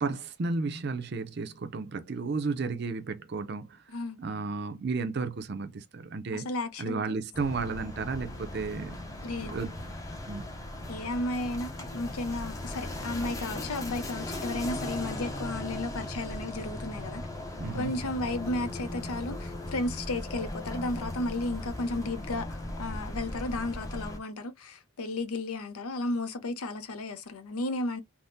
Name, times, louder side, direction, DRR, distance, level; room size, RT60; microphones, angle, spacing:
voice 1, 0.0-3.8 4.2-6.5 6.8-10.0 10.3-10.5 17.6-17.9, right 4 dB, 50° right, 0.5 m, -33 dB
voice 2, 6.3-7.2 9.2-9.5 10.9-17.3 17.7-28.0, left 2 dB, 90° left, 0.7 m, -33 dB
sound 1, 7.3-24.2, left 1 dB, 15° left, 0.5 m, -38 dB
3.5 x 2.1 x 2.6 m
head